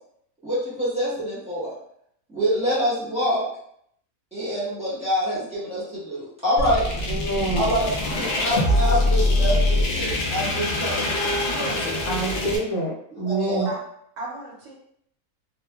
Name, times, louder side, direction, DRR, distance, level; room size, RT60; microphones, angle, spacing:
voice 1, 0.4-1.7 2.3-3.4 4.3-6.8 7.6-11.1 13.2-13.7, equal, 5° right, -11 dB, 1.1 m, -26 dB
sound 1, 6.6-12.6, left 1 dB, 60° left, 0.7 m, -23 dB
voice 2, 7.1-7.7 12.1-13.7, right 2 dB, 80° left, -2 dB, 1.2 m, -26 dB
voice 3, 7.8-8.2 11.2-12.1 13.6-13.8 14.2-14.7, right 2 dB, 70° right, -2 dB, 0.9 m, -36 dB
2.7 x 2.4 x 2.2 m, 0.70 s
omnidirectional pair, 1.5 m